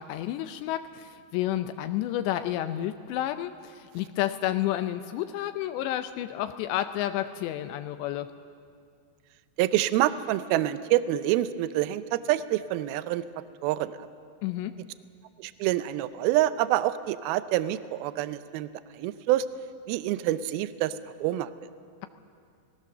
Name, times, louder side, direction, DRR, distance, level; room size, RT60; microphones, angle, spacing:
voice 1, 0.0-8.3 14.4-14.7, left 13 dB, 80° left, 9 dB, 2.8 m, -30 dB
voice 2, 9.6-13.2 13.6-14.0 15.4-18.7 18.9-19.5 19.9-21.5, right 14 dB, 85° right, 13 dB, 2.1 m, -27 dB
28.5 x 18.5 x 6.7 m, 2.3 s
omnidirectional pair, 5.1 m